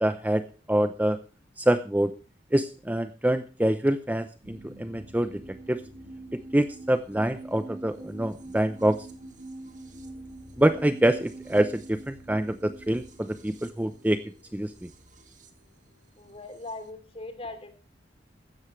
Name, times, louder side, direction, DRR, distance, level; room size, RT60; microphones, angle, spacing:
voice 1, 0.0-0.4 0.7-1.2 1.6-2.1 2.5-5.4 5.7-5.8 6.5-9.1 10.6-14.2 14.5-14.9, right 1 dB, 10° right, 10 dB, 0.7 m, -25 dB
sound 1, 4.4-16.9, right 2 dB, 45° right, 2.2 m, -45 dB
voice 2, 16.2-17.7, left 2 dB, 35° left, 7 dB, 3.1 m, -40 dB
16.0 x 13.0 x 3.2 m, 0.37 s
head